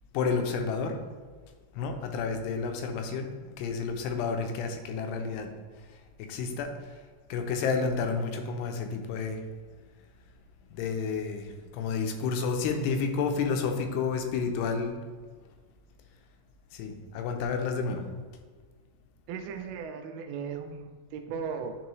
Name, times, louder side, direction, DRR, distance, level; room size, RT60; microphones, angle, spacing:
voice 1, 0.1-1.0 1.7-3.3 3.6-5.5 6.2-6.7 7.3-9.4 10.7-15.0 16.7-18.0, left 5 dB, 85° left, 5 dB, 2.8 m, -30 dB
voice 2, 19.3-21.8, right 6 dB, 80° right, 5 dB, 2.3 m, -37 dB
9.9 x 4.6 x 3.1 m, 1.5 s
omnidirectional pair, 4.7 m